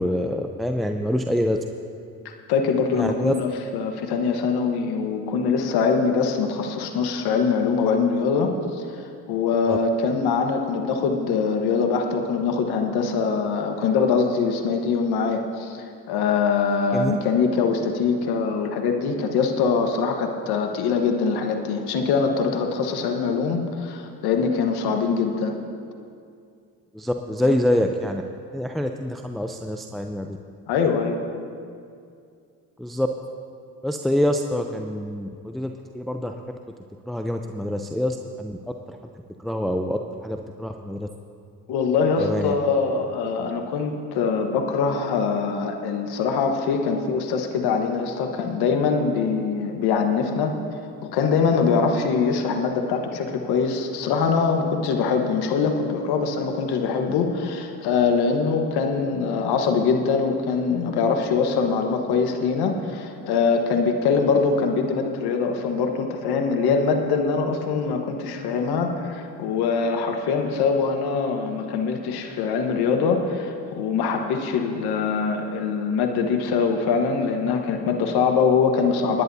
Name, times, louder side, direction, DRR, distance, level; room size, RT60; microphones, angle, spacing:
voice 1, 0.0-1.6 2.9-3.3 9.7-9.8 16.9-17.1 26.9-28.2 28.5-30.4 32.8-33.1 33.8-36.3 37.1-38.6 38.9-39.0 39.4-41.1 42.2-42.5, left 1 dB, ahead, 4 dB, 0.6 m, -26 dB
voice 2, 2.5-8.8 9.3-15.8 16.1-25.5 30.7-31.2 41.7-50.5 51.0-79.2, left 5 dB, 70° left, 4 dB, 1.5 m, -23 dB
25.0 x 10.5 x 2.8 m, 2.4 s
hypercardioid pair, 65°, 40 cm